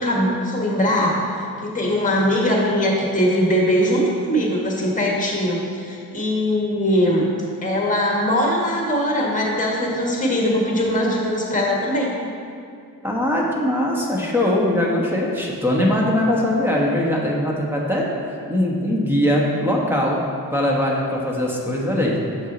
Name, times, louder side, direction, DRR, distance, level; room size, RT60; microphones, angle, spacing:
voice 1, 0.0-7.2 7.6-12.1, equal, 20° left, -2 dB, 1.8 m, -21 dB
voice 2, 13.0-18.1 18.5-20.2 20.5-22.2, left 1 dB, 5° right, -3 dB, 1.3 m, -21 dB
7.2 x 6.0 x 4.1 m, 2.5 s
cardioid pair, 85°, 36 cm